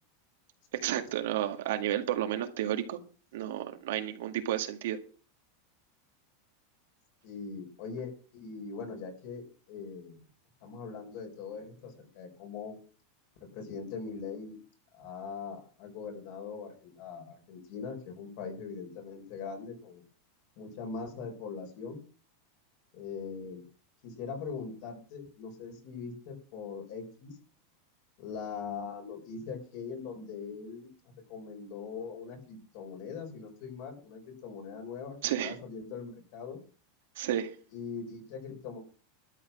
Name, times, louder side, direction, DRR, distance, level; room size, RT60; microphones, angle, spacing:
voice 1, 0.7-3.0 3.3-5.0 35.2-35.6 37.2-37.6, right 12 dB, 75° right, 1.9 m, -31 dB
voice 2, 7.2-10.2 10.6-12.8 13.5-14.6 14.9-20.0 20.6-22.0 22.9-23.6 24.0-27.4 28.2-30.9 31.3-36.6 37.7-38.8, left 5 dB, 55° left, 4.9 m, -41 dB
12.5 x 8.5 x 6.1 m
supercardioid pair, 155°, 0 cm